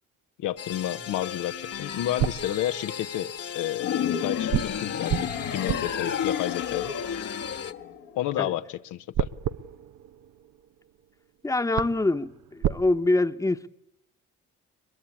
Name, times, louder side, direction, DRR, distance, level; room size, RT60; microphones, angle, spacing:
voice 1, 0.4-6.9 8.1-9.3, left 13 dB, 90° left, 1.0 m, -31 dB
sound 1, 0.6-7.7, left 8 dB, 55° left, 1.6 m, -37 dB
sound 2, 1.8-3.3 4.5-7.8 9.1-11.0 11.4-11.5 11.7-12.8, right 10 dB, 85° right, 0.9 m, -32 dB
sound 3, 3.8-8.3, left 8 dB, 75° left, 1.6 m, -31 dB
voice 2, 11.4-13.7, left 2 dB, 10° left, 1.0 m, -25 dB
22.5 x 22.0 x 8.6 m
cardioid pair, 90°, 30 cm